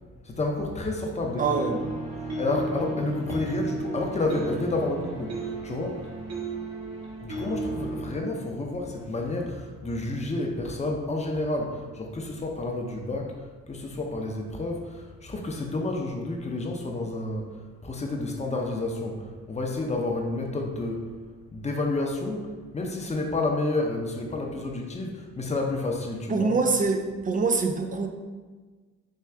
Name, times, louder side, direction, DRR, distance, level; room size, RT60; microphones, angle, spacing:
voice 1, 0.2-6.1 7.2-21.1 21.5-26.6, left 2 dB, 20° left, 1 dB, 0.6 m, -30 dB
voice 2, 1.4-1.8 26.3-28.1, right 4 dB, 25° right, 4 dB, 0.5 m, -24 dB
sound 1, 1.4-8.1, right 3 dB, 55° right, 1.2 m, -34 dB
4.3 x 2.3 x 3.5 m, 1.4 s
cardioid pair, 90°, 30 cm